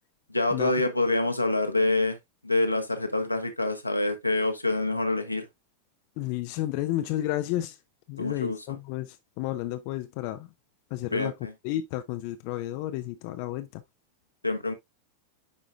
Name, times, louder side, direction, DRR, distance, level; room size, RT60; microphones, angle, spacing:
voice 1, 0.3-2.2 2.4-5.5 8.2-8.8 11.1-11.5 14.4-14.7, left 2 dB, 85° left, 1.2 m, -26 dB
voice 2, 6.2-7.8 8.1-10.5 10.9-11.3 11.6-13.8, left 14 dB, 45° left, 0.5 m, -31 dB
9.6 x 5.0 x 2.4 m
figure-of-eight pair, 90°, 0 cm